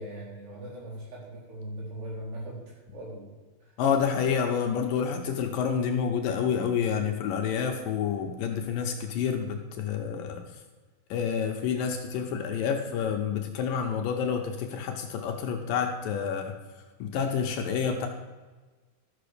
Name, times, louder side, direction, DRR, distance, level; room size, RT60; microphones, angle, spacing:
voice 1, 0.0-3.3 3.6-3.8, right 1 dB, 80° right, -5 dB, 6.0 m, -40 dB
voice 2, 3.8-10.6 11.1-16.5 17.0-18.1, left 7 dB, 75° left, 3 dB, 2.3 m, -28 dB
13.0 x 6.8 x 6.7 m, 1.3 s
omnidirectional pair, 4.6 m